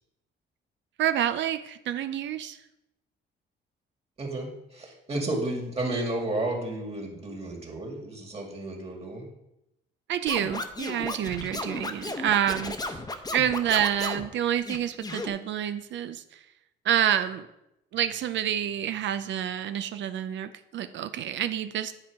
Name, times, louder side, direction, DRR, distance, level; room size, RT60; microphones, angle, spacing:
voice 1, 1.0-2.6 10.1-13.0 13.3-16.4 16.8-17.5 17.9-21.9, right 10 dB, 70° right, 10 dB, 0.5 m, -28 dB
voice 2, 4.2-9.3, right 2 dB, 30° right, 0 dB, 2.1 m, -32 dB
Scratching (performance technique), 10.3-14.3 14.7-15.3, left 2 dB, 20° left, 0.9 m, -34 dB
9.7 x 4.6 x 4.7 m, 0.86 s
cardioid pair, 90°, 20 cm